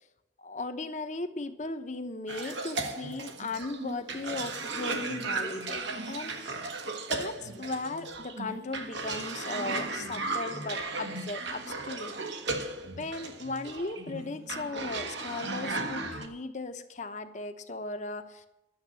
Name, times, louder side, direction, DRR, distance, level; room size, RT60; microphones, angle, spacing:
voice 1, 0.4-6.7 7.1-12.2 13.0-18.5, left 3 dB, 40° left, 9 dB, 0.9 m, -37 dB
Cough, 2.3-16.3, right 3 dB, 80° right, 1.5 m, -36 dB
11.0 x 7.3 x 9.5 m, 0.90 s
head